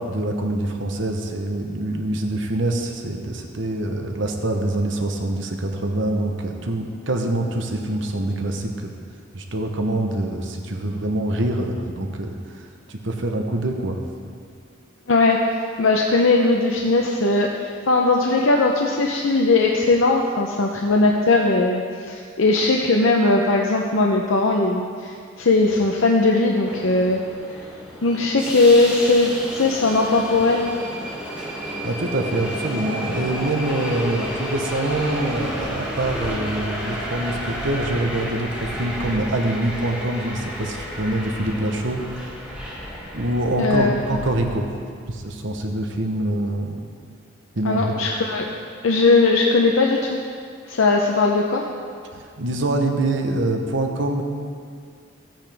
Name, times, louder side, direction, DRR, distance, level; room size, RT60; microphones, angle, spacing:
voice 1, 0.0-8.9 9.3-12.3 12.9-14.0 31.8-42.3 43.1-44.7 45.1-46.8 47.5-48.1 52.4-54.2, right 1 dB, 70° right, 3 dB, 1.0 m, -25 dB
voice 2, 15.1-15.4 15.8-27.2 28.0-30.7 43.6-44.2 47.6-48.5 48.8-50.2 50.7-51.6, left 3 dB, 85° left, 0 dB, 0.7 m, -19 dB
Subway metro underground, 26.7-44.6, equal, 5° right, 1.8 m, -31 dB
15.0 x 8.9 x 3.5 m, 2.2 s
head